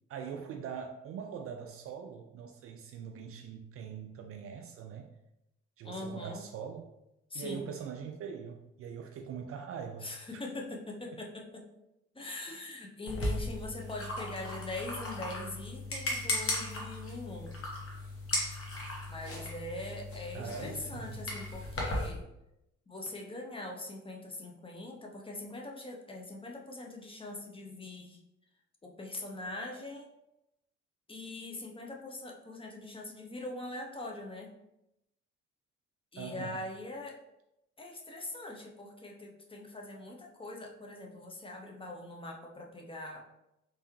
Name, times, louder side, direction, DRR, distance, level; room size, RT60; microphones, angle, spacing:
voice 1, 0.1-5.1 5.8-6.9 7.3-10.4 20.3-21.2 36.2-36.6, right 7 dB, 40° right, 4 dB, 0.4 m, -42 dB
voice 2, 5.8-6.4 7.3-7.7 10.0-11.7 12.1-17.5 19.1-22.3 22.9-28.2 28.8-30.1 31.1-34.5 36.1-37.2 37.8-43.2, left 2 dB, 15° left, 0 dB, 0.6 m, -42 dB
sound 1, 13.1-22.1, left 1 dB, 35° left, 1.1 m, -37 dB
3.4 x 3.3 x 2.9 m, 0.87 s
figure-of-eight pair, 45°, 38 cm